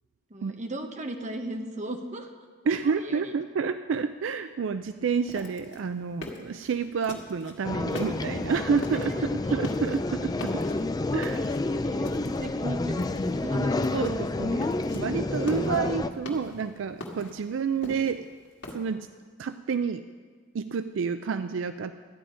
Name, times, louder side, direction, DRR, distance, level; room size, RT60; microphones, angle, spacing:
voice 1, 0.3-2.3 2.8-3.3 11.8-13.9, right 1 dB, 40° right, 4 dB, 1.1 m, -36 dB
voice 2, 2.7-10.5 11.1-11.4 13.9-18.2 18.7-19.1 19.4-20.0 20.5-21.9, right 5 dB, 75° right, 10 dB, 0.4 m, -29 dB
sound 1, 5.3-7.6 7.9-8.5 8.8-9.2 9.5-10.0 10.3-10.9 11.2-12.5 12.9-13.4 13.8-14.2 14.4-15.0 15.3-16.6 17.0-18.8, left 1 dB, 65° left, 1.8 m, -40 dB
sound 2, 7.6-16.1, left 2 dB, 20° left, 0.4 m, -29 dB
13.5 x 10.0 x 5.0 m, 1.5 s
head